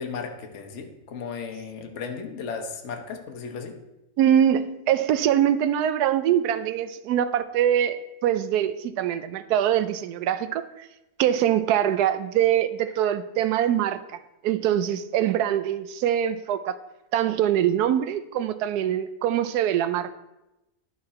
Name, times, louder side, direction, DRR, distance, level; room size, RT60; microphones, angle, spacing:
voice 1, 0.0-3.8, left 5 dB, 55° left, 4 dB, 1.1 m, -35 dB
voice 2, 4.2-10.9 11.2-14.0 14.4-16.8 17.1-20.1, right 10 dB, 85° right, 12 dB, 1.1 m, -23 dB
11.0 x 4.8 x 4.2 m, 0.95 s
omnidirectional pair, 1.6 m